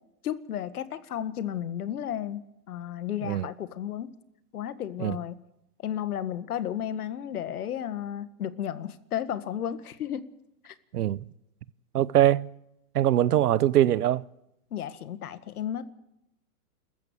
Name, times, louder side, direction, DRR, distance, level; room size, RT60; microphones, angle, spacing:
voice 1, 0.2-2.4 2.7-4.1 4.5-5.4 5.8-10.2 10.6-10.7 14.7-15.8, left 10 dB, 75° left, 1.8 m, -33 dB
voice 2, 10.9-11.2 11.9-12.5 12.9-14.2, right 12 dB, 85° right, 0.9 m, -22 dB
28.0 x 14.5 x 8.1 m
hypercardioid pair, 155°, 45 cm